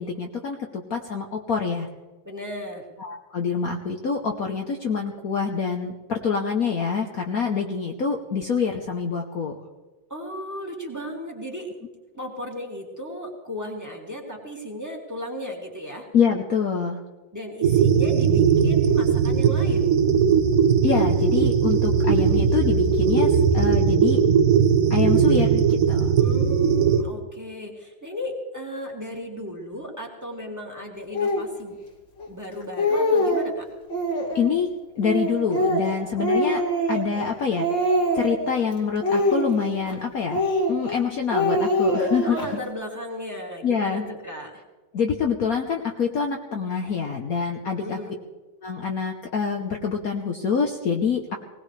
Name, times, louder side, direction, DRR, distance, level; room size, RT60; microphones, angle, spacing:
voice 1, 0.0-1.9 3.0-9.5 16.1-17.0 20.8-24.2 24.9-26.1 34.3-34.7 35.0-36.6 36.9-37.9 38.1-40.4 40.7-42.4 43.6-44.0 44.9-48.0 48.6-51.4, left 6 dB, 55° left, 3 dB, 1.3 m, -26 dB
voice 2, 2.2-2.8 10.1-11.7 12.1-16.1 17.3-19.9 26.2-31.8 32.3-33.7 42.2-44.6 47.6-48.2, equal, 10° right, 0 dB, 2.4 m, -35 dB
sound 1, 17.6-27.0, right 6 dB, 55° right, 1.2 m, -19 dB
Speech, 31.1-31.5 32.2-32.3 32.6-33.5 33.9-34.5 35.0-37.3 37.6-38.5 39.0-39.9 40.3-41.0 41.3-42.5, equal, 70° left, 3.1 m, -24 dB
20.0 x 19.0 x 3.3 m, 1.2 s
omnidirectional pair, 2.1 m